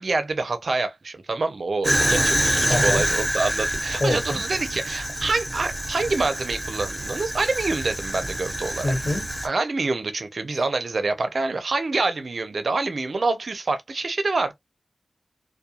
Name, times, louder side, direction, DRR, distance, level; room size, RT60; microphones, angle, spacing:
voice 1, 0.0-8.9 9.4-14.5, right 3 dB, 70° right, 0.5 m, -26 dB
Fire, 1.8-9.5, right 1 dB, 15° right, 1.0 m, -26 dB
voice 2, 2.7-3.0 4.0-4.4 8.8-9.2 10.5-10.6, left 1 dB, 45° left, 1.4 m, -25 dB
2.3 x 2.1 x 2.7 m
wide cardioid pair, 55°, 0 cm